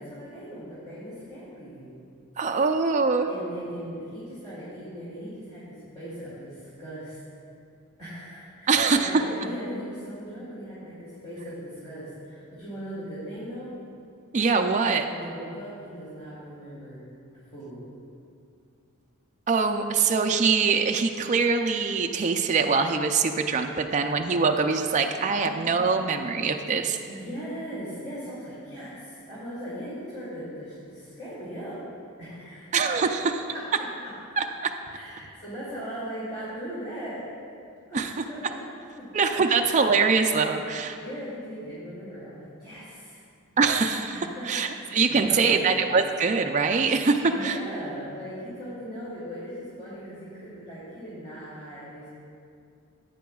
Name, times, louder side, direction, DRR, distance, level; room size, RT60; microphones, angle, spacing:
voice 1, 0.0-1.9 3.3-7.2 8.0-13.7 15.1-17.0 17.3-17.8 23.9-24.1 25.1-25.7 27.1-31.8 32.2-32.7 33.5-33.6 34.9-37.3 37.9-38.6 39.0-39.1 41.0-43.2 44.1-45.7 47.3-52.1, equal, 30° left, -11 dB, 2.4 m, -39 dB
voice 2, 2.4-3.3 8.7-9.2 14.3-15.1 19.5-27.0 32.7-33.4 34.4-34.7 37.9-38.1 39.1-41.0 43.6-44.2 44.4-47.6, right 4 dB, 35° right, 4 dB, 0.4 m, -23 dB
15.0 x 9.1 x 2.3 m, 2.4 s
head